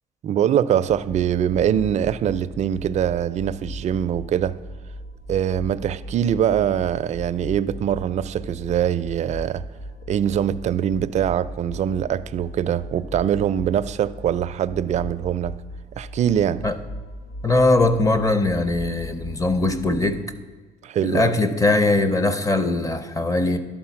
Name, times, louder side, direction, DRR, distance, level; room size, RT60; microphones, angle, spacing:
voice 1, 0.2-4.5 5.3-9.6 10.1-15.5 16.0-16.6 20.8-21.3, right 9 dB, 45° right, 13 dB, 0.4 m, -23 dB
sound 1, 0.9-20.3, equal, 75° left, 1.3 m, -38 dB
voice 2, 17.4-20.2 21.0-23.6, left 2 dB, 20° left, 11 dB, 0.7 m, -20 dB
11.5 x 3.9 x 5.8 m, 1.4 s
cardioid pair, 110°, 17 cm